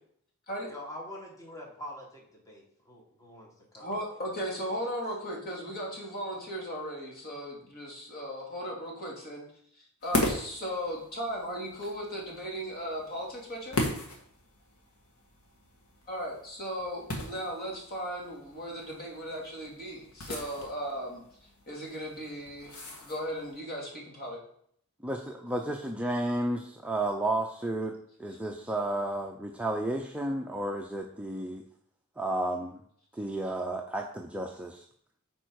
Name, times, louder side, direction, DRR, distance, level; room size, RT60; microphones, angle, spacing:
voice 1, 0.7-4.0 4.6-4.7, left 1 dB, 15° left, -2 dB, 1.5 m, -45 dB
voice 2, 3.8-9.4 10.0-13.8 16.1-21.2 21.7-24.4, equal, 45° left, -3 dB, 2.7 m, -37 dB
sound 1, 10.0-23.6, left 1 dB, 85° left, 1.6 m, -38 dB
voice 3, 25.0-31.6 32.2-32.8 33.2-34.8, right 1 dB, 5° right, 1 dB, 0.5 m, -32 dB
9.1 x 4.6 x 4.6 m, 0.66 s
head